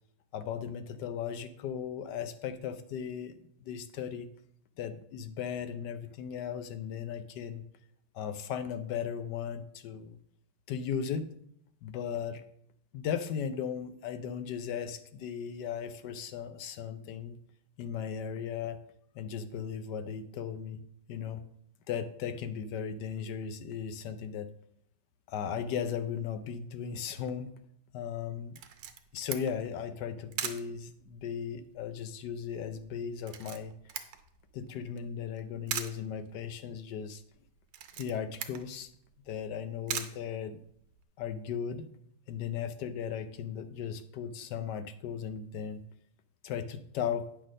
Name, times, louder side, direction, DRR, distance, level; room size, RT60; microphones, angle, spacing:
voice 1, 0.3-3.3 3.6-4.3 4.8-7.6 8.1-10.2 10.7-11.3 11.8-12.4 12.9-17.4 17.8-18.8 19.1-20.8 21.1-21.4 21.9-24.5 25.3-27.5 27.9-28.6 29.1-33.7 34.5-37.2 38.0-38.9 39.3-40.6 41.2-41.9 42.3-45.8 46.4-47.3, left 7 dB, 70° left, 11 dB, 1.0 m, -36 dB
Camera, 28.5-41.0, right 9 dB, 75° right, 1.5 m, -43 dB
9.1 x 4.1 x 6.2 m, 0.69 s
omnidirectional pair, 2.3 m